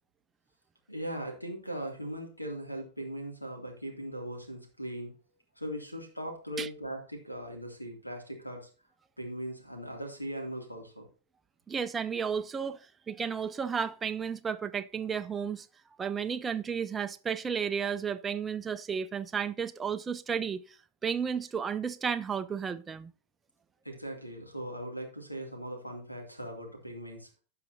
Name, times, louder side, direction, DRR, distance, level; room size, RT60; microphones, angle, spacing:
voice 1, 0.9-5.1 5.6-8.7 9.2-11.1 23.8-27.4, equal, 85° left, 2.4 m, -39 dB
voice 2, 11.7-12.8 13.1-15.7 16.0-20.8 21.0-23.1, right 6 dB, 15° right, 0.4 m, -33 dB
16.0 x 5.7 x 2.7 m
figure-of-eight pair, 90°, 0 cm